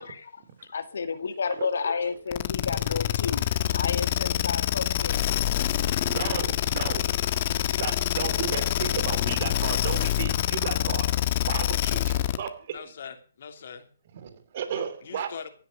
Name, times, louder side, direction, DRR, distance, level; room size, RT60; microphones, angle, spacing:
voice 1, 0.0-5.3 7.6-7.8 8.9-9.0, left 5 dB, 75° left, 2.0 m, -32 dB
sound 1, 2.3-12.5, left 13 dB, 40° left, 1.4 m, -26 dB
voice 2, 6.0-7.1 7.8-11.1 11.4-12.8 14.1-15.3, right 8 dB, 50° right, 3.0 m, -34 dB
voice 3, 12.7-13.9 14.7-15.5, left 7 dB, 60° left, 2.9 m, -42 dB
16.5 x 9.9 x 6.6 m
hypercardioid pair, 145°, 0 cm